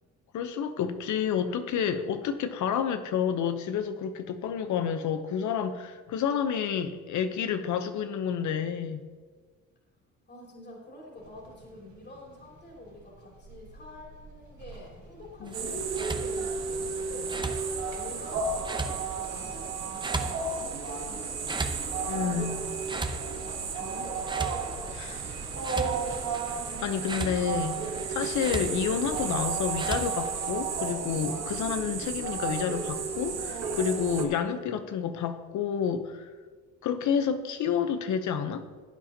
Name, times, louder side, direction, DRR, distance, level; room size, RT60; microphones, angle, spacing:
voice 1, 0.3-9.0 15.4-15.5 22.1-22.6 25.1-25.2 26.5-36.3 36.8-38.6, left 7 dB, 75° left, 9 dB, 0.9 m, -29 dB
voice 2, 10.3-17.4 17.9-22.7 23.4-25.2, left 1 dB, 35° left, -2 dB, 3.1 m, -47 dB
sound 1, 11.2-29.4, right 3 dB, 85° right, 3.1 m, -51 dB
sound 2, 15.4-30.3, right 3 dB, 15° right, 0.7 m, -39 dB
sound 3, 15.5-34.2, right 5 dB, 60° right, 1.5 m, -33 dB
15.5 x 8.6 x 2.9 m, 1.5 s
cardioid pair, 90°, 30 cm